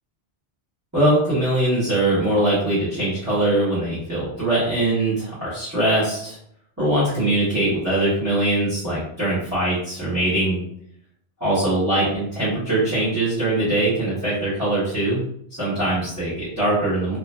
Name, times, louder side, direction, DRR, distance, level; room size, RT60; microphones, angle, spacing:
voice 1, 0.9-6.4 6.8-10.6 11.4-15.2 15.6-17.2, right 1 dB, 15° right, -14 dB, 1.4 m, -22 dB
2.9 x 2.6 x 2.2 m, 0.69 s
omnidirectional pair, 1.1 m